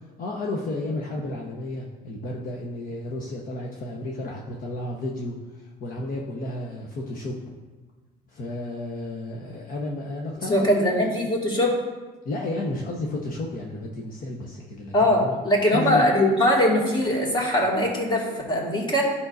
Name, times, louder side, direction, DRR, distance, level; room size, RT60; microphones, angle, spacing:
voice 1, 0.2-7.4 8.3-10.6 10.9-11.0 12.2-14.9 15.2-15.4 15.7-16.1, left 2 dB, 55° left, -1 dB, 1.1 m, -32 dB
voice 2, 10.5-11.8 14.9-19.0, left 1 dB, 25° left, -2 dB, 2.2 m, -21 dB
12.0 x 5.5 x 2.6 m, 1.3 s
cardioid pair, 110°, 17 cm